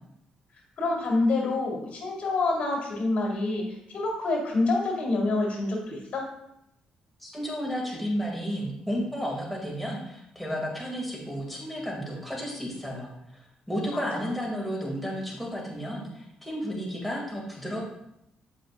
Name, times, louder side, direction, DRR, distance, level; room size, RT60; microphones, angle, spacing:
voice 1, 0.8-6.3 13.9-14.2, left 2 dB, 60° left, -2 dB, 2.3 m, -27 dB
voice 2, 7.2-17.8, equal, ahead, -3 dB, 2.3 m, -32 dB
7.4 x 5.3 x 2.5 m, 0.80 s
supercardioid pair, 65°, 3 cm